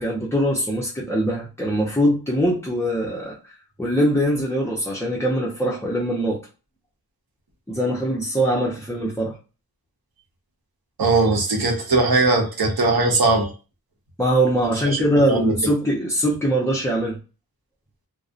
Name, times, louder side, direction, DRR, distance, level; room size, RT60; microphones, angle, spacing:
voice 1, 0.0-3.5 3.8-6.4 7.7-9.4 14.2-17.2, right 1 dB, 5° left, -2 dB, 0.6 m, -22 dB
voice 2, 11.0-13.5 14.8-15.0 15.3-15.5, right 3 dB, 75° right, 1 dB, 0.8 m, -19 dB
2.6 x 2.0 x 2.4 m, 0.33 s
wide cardioid pair, 65°, 37 cm